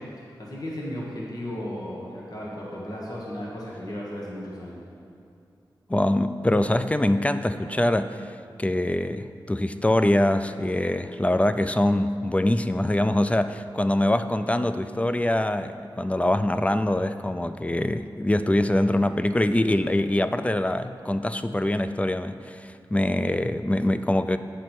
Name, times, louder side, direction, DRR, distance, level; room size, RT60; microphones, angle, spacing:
voice 1, 0.0-4.8, equal, 50° left, -5 dB, 1.5 m, -35 dB
voice 2, 5.9-8.2 8.6-24.4, left 1 dB, 15° left, 11 dB, 0.3 m, -24 dB
8.3 x 6.1 x 4.5 m, 2.5 s
wide cardioid pair, 60°, 9 cm